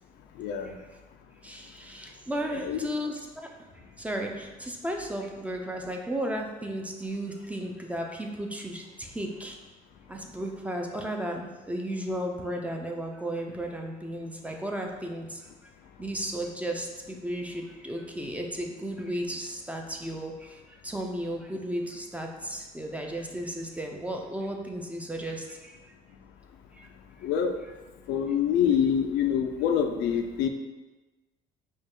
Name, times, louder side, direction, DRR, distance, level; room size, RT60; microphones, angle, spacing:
voice 1, 0.4-0.8 2.5-2.9 27.2-27.5 28.1-30.5, left 8 dB, 85° left, 5 dB, 0.5 m, -26 dB
voice 2, 1.4-3.5 4.0-9.6 10.1-15.7 16.0-25.8 26.7-26.9, right 1 dB, 10° right, 2 dB, 0.5 m, -34 dB
5.2 x 2.4 x 3.6 m, 1.2 s
cardioid pair, 110°, 17 cm